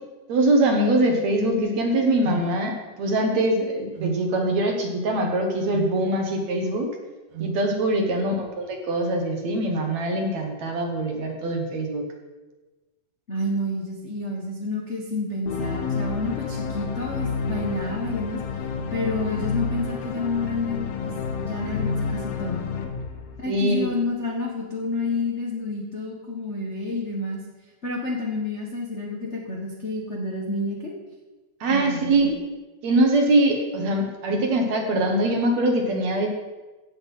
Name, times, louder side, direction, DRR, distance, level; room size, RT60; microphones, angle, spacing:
voice 1, 0.3-6.9 7.4-12.0 23.5-24.0 31.6-32.4 32.8-36.3, right 1 dB, 55° right, 3 dB, 2.5 m, -23 dB
sound 1, 2.2-2.5 4.0-4.3 5.7-6.0 7.3-7.6, right 9 dB, 80° right, 1.7 m, -32 dB
voice 2, 13.3-18.4 18.9-22.7 23.4-27.4 27.8-30.9 31.7-32.2, left 2 dB, 70° left, -2 dB, 0.6 m, -29 dB
sound 2, 15.5-23.9, left 5 dB, 85° left, 3.0 m, -30 dB
15.5 x 8.0 x 5.6 m, 1.2 s
omnidirectional pair, 4.1 m